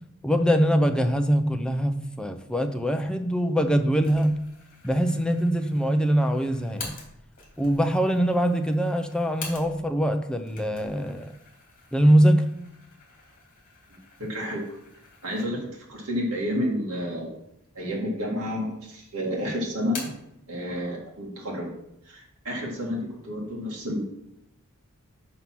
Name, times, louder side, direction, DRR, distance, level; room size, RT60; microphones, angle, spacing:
voice 1, 0.2-4.3 4.8-7.0 7.6-11.3 11.9-12.5, equal, 5° left, 6 dB, 0.5 m, -23 dB
sound 1, 4.0-10.0 10.4-15.8 16.2-16.3 17.2-17.8 18.2-18.9 19.2-20.3, left 4 dB, 40° left, 2.4 m, -45 dB
voice 2, 14.2-14.7 15.2-17.4 17.7-20.1 20.5-21.7 22.1-24.0, equal, 70° right, -2 dB, 2.0 m, -30 dB
5.9 x 5.4 x 5.9 m, 0.78 s
head